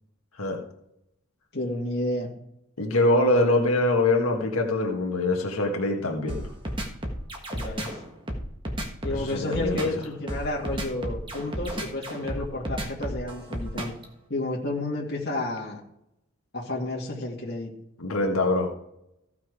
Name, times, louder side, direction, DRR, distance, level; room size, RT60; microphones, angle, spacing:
voice 1, 1.5-2.3 7.5-8.0 9.0-13.9 14.3-15.8 16.5-17.7, left 2 dB, 45° left, -3 dB, 2.3 m, -31 dB
voice 2, 2.8-6.4 9.1-9.9 18.0-18.7, left 2 dB, 80° left, 2 dB, 1.7 m, -24 dB
sound 1, 6.3-14.0, equal, 20° right, 1.5 m, -32 dB
15.0 x 5.9 x 4.9 m, 0.80 s
head